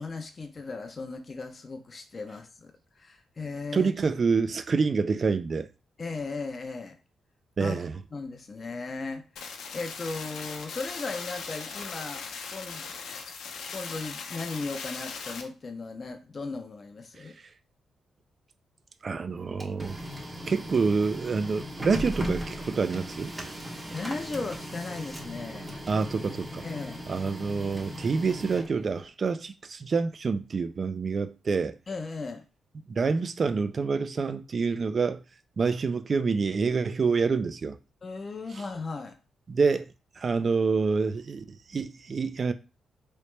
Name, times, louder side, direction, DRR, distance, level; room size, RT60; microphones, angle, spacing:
voice 1, 0.0-3.9 6.0-7.0 7.6-7.9 8.1-12.2 12.5-12.8 13.7-17.3 23.9-25.7 26.6-27.1 31.9-32.4 38.0-39.2, left 3 dB, 40° left, 0.5 m, -36 dB
voice 2, 3.7-5.7 7.6-8.0 19.0-20.0 20.5-23.3 25.9-26.6 27.1-31.8 32.9-35.2 35.6-37.8 39.5-39.9 40.2-42.5, right 4 dB, 45° right, 0.4 m, -27 dB
sound 1, 9.4-15.4, left 5 dB, 80° left, 0.6 m, -39 dB
Printer, 19.3-29.1, equal, 20° right, 0.7 m, -38 dB
3.2 x 2.8 x 3.2 m
cardioid pair, 80°, 0 cm